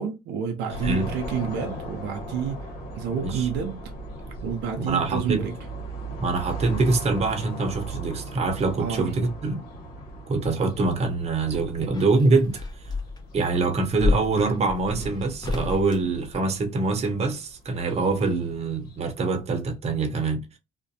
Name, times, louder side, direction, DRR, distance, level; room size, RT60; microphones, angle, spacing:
voice 1, 0.0-3.9 4.4-5.6 8.8-9.1, right 7 dB, 85° right, 0.5 m, -29 dB
sound 1, 0.7-19.0, right 2 dB, 65° left, 1.1 m, -38 dB
voice 2, 3.1-3.5 4.8-5.4 6.2-9.6 10.3-12.6 13.3-20.6, right 3 dB, 40° right, 0.7 m, -24 dB
sound 2, 10.9-17.0 18.4-19.2 19.5-19.6, left 3 dB, 25° left, 0.7 m, -32 dB
2.5 x 2.1 x 2.7 m
cardioid pair, 110°, 17 cm